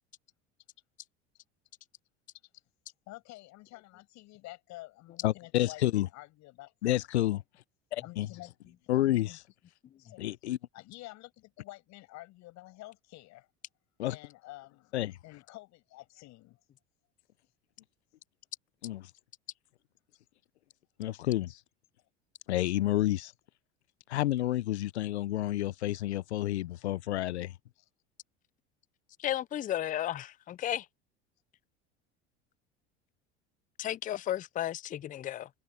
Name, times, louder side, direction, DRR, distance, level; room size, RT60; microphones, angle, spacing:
voice 1, 3.1-7.4 8.0-8.5 8.9-9.4 10.0-10.3 10.7-13.5 14.1-15.0 15.2-16.6 27.8-27.9, left 19 dB, 55° left, 7.4 m, -49 dB
voice 2, 5.2-6.1 6.8-7.4 7.9-8.3 8.9-9.3 10.2-10.6 14.0-14.2 14.9-15.2 18.8-19.0 21.0-21.6 22.5-23.3 24.1-27.5, left 14 dB, 85° left, 0.6 m, -29 dB
voice 3, 29.2-30.9 33.8-35.5, left 12 dB, 25° left, 0.5 m, -33 dB
hypercardioid pair, 80°, 33 cm